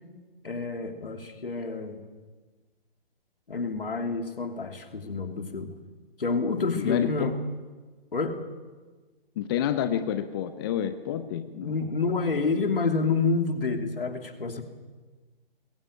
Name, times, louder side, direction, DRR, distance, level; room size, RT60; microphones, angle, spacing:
voice 1, 0.4-2.0 3.5-5.7 6.2-7.3 8.1-8.4 11.6-14.6, left 4 dB, 65° left, 5 dB, 2.9 m, -28 dB
voice 2, 6.8-7.3 9.4-11.8, left 10 dB, 25° left, 10 dB, 0.8 m, -29 dB
22.0 x 15.5 x 8.8 m, 1.3 s
figure-of-eight pair, 135°, 30 cm